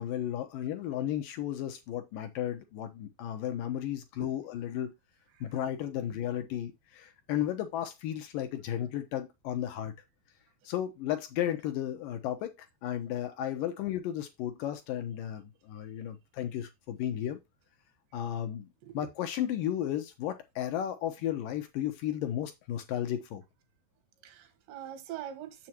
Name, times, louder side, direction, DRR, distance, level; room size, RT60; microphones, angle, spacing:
voice 1, 0.0-4.9 5.4-9.9 10.7-12.5 12.8-17.4 18.1-18.7 18.9-23.4, left 11 dB, 75° left, 2.1 m, -34 dB
voice 2, 24.2-25.7, right 10 dB, 80° right, 3.4 m, -43 dB
7.4 x 7.4 x 2.9 m
omnidirectional pair, 5.0 m